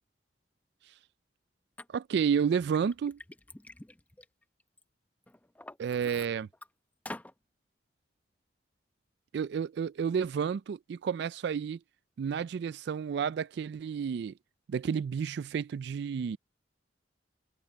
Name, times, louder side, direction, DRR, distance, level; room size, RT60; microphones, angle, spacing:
Liquid, 1.8-1.9 2.4-4.8 5.3-6.7 7.1-7.3, left 1 dB, 10° left, 0.6 m, -47 dB
voice 1, 1.9-3.2 5.8-6.5 9.3-11.8 12.2-14.3 14.7-16.4, right 7 dB, 65° right, 0.3 m, -31 dB
open air
head